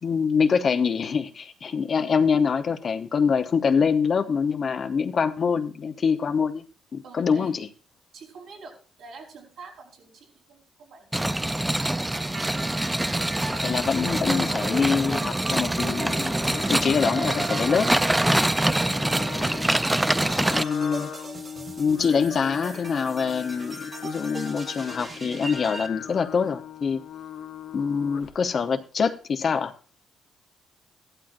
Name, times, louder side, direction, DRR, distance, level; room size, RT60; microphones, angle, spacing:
voice 1, 0.0-6.6 6.9-7.7 13.6-16.3 16.7-17.9 18.3-18.4 20.5-21.1 21.8-27.0 27.7-29.7, left 6 dB, 50° left, 8 dB, 0.9 m, -25 dB
voice 2, 7.0-7.5 8.1-11.5, right 3 dB, 75° right, -2 dB, 4.5 m, -47 dB
sound 1, 11.1-20.6, right 1 dB, 10° right, 0.4 m, -25 dB
sound 2, 12.1-25.9, right 3 dB, 35° right, 1.4 m, -38 dB
Singing, 16.3-28.5, left 8 dB, 85° left, 1.2 m, -40 dB
15.0 x 12.0 x 2.6 m, 0.38 s
cardioid pair, 90°, 0 cm